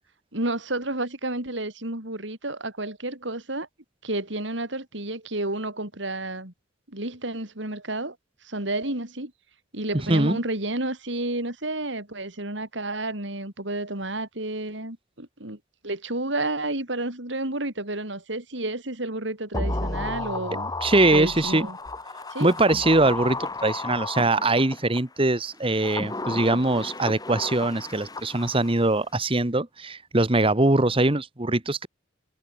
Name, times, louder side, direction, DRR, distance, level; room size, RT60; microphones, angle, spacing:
voice 1, 0.3-3.7 4.0-6.5 6.9-8.2 8.4-9.3 9.7-15.6 15.8-20.7 21.0-21.8 22.3-22.5, right 2 dB, 65° right, 4.9 m, -31 dB
voice 2, 10.1-10.4 20.8-21.7 22.4-31.9, right 2 dB, 30° right, 1.4 m, -22 dB
sound 1, 19.5-25.0 25.6-28.9 29.1-29.2, left 2 dB, 20° left, 3.1 m, -33 dB
head